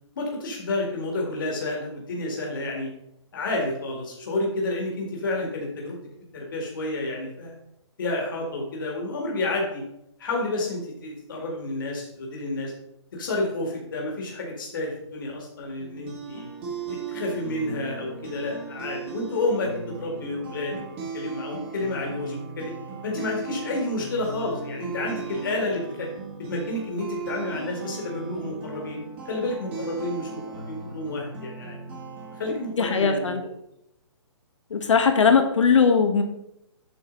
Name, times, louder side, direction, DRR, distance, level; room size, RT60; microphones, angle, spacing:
voice 1, 0.2-2.9 3.3-6.0 6.3-7.6 8.0-9.8 10.2-12.7 13.1-16.5 16.9-20.8 21.1-22.7 23.0-26.1 26.5-29.0 29.3-30.3 30.5-31.8 32.4-33.3, left 2 dB, 45° left, -1 dB, 2.0 m, -30 dB
sound 1, 15.8-32.7, right 4 dB, 25° right, 1.7 m, -37 dB
voice 2, 32.8-33.4 34.7-36.2, left 5 dB, 85° left, 6 dB, 1.5 m, -19 dB
7.8 x 6.5 x 4.0 m, 0.80 s
hypercardioid pair, 175°, 15 cm